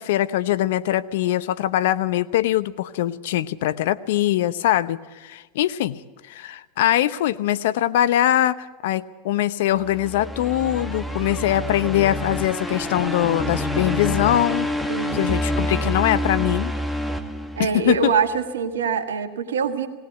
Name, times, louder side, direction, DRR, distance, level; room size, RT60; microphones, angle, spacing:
voice 1, 0.0-6.0 6.3-14.7 15.1-16.7 17.6-18.1, left 13 dB, 70° left, 16 dB, 0.8 m, -22 dB
sound 1, 9.8-18.1, left 1 dB, 5° left, 2.0 m, -27 dB
voice 2, 14.9-15.3 17.6-19.9, right 6 dB, 85° right, 7 dB, 1.7 m, -24 dB
19.0 x 18.0 x 8.1 m, 1.3 s
hypercardioid pair, 95°, 0 cm